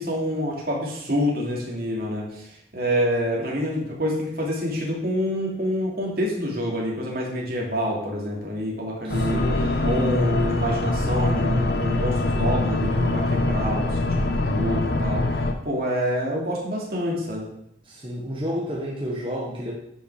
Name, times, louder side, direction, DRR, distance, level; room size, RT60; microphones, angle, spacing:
voice 1, 0.0-2.5 2.7-9.5 9.8-15.2 15.6-17.5, equal, 55° right, -3 dB, 2.7 m, -27 dB
voice 2, 9.0-10.2 17.9-19.7, equal, 30° right, -4 dB, 1.5 m, -31 dB
sound 1, 9.1-15.5, left 2 dB, 65° left, 0.9 m, -23 dB
10.0 x 5.7 x 4.9 m, 0.76 s
head